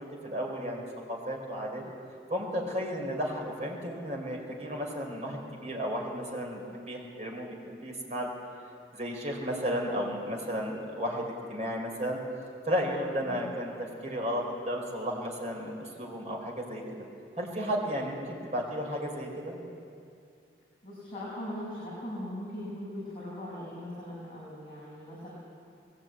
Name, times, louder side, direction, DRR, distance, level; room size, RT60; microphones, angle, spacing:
voice 1, 0.0-1.8 2.3-8.3 8.9-12.2 12.7-13.7 14.0-17.0 17.4-19.6, equal, 40° right, -1 dB, 4.2 m, -33 dB
voice 2, 20.8-25.3, left 1 dB, 25° left, -8 dB, 6.2 m, -40 dB
21.0 x 17.0 x 9.0 m, 2.4 s
head